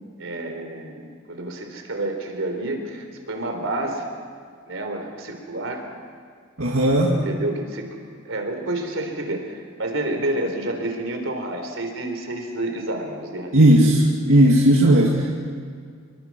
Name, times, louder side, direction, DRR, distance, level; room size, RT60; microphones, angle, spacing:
voice 1, 0.2-4.1 4.7-5.8 7.2-7.9 8.3-14.0, right 1 dB, 70° right, 4 dB, 4.0 m, -29 dB
voice 2, 6.6-7.2 13.5-14.0 14.3-15.3, right 1 dB, 85° right, -2 dB, 2.4 m, -15 dB
26.0 x 23.5 x 6.2 m, 2.1 s
head